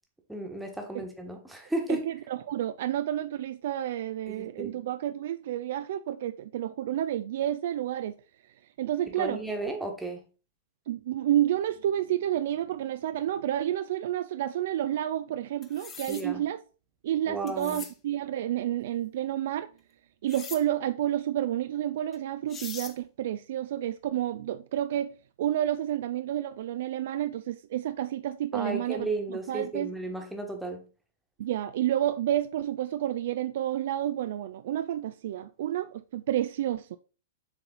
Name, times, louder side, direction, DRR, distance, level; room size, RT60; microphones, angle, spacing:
voice 1, 0.3-2.1 4.3-4.8 9.1-10.2 16.1-16.4 17.3-17.8 28.5-30.9, right 2 dB, 5° right, 1.3 m, -34 dB
voice 2, 1.9-8.2 8.8-9.4 10.9-16.6 17.0-19.7 20.2-29.9 31.4-37.0, right 12 dB, 50° right, 0.3 m, -30 dB
sound 1, 15.6-16.3 17.5-17.9 20.3-20.6 22.1-22.2 22.5-23.0, left 6 dB, 20° left, 0.8 m, -41 dB
7.0 x 3.8 x 3.9 m
figure-of-eight pair, 105°, 0 cm